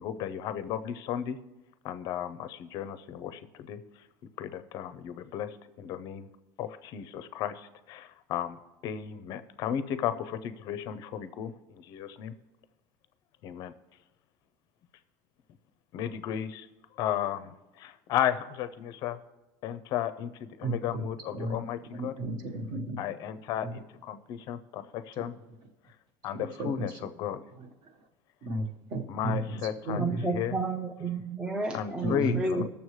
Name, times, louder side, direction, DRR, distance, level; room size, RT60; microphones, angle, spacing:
voice 1, 0.0-1.4 1.8-4.1 4.4-6.3 6.6-12.3 13.4-13.7 15.9-16.7 16.9-19.2 19.6-22.1 23.0-25.3 25.8-25.9 26.2-27.4 29.1-30.6 31.7-32.6, left 10 dB, 40° left, 12 dB, 0.5 m, -34 dB
voice 2, 20.6-21.1 21.3-21.5 21.9-23.0 23.6-23.7 26.3-26.9 27.6-27.7 28.4-29.4 29.9-30.3 32.0-32.6, right 2 dB, 45° right, 4 dB, 1.3 m, -33 dB
voice 3, 30.0-32.6, right 3 dB, 10° right, 3 dB, 0.5 m, -31 dB
20.0 x 7.0 x 3.2 m, 1.1 s
cardioid pair, 160°, 10 cm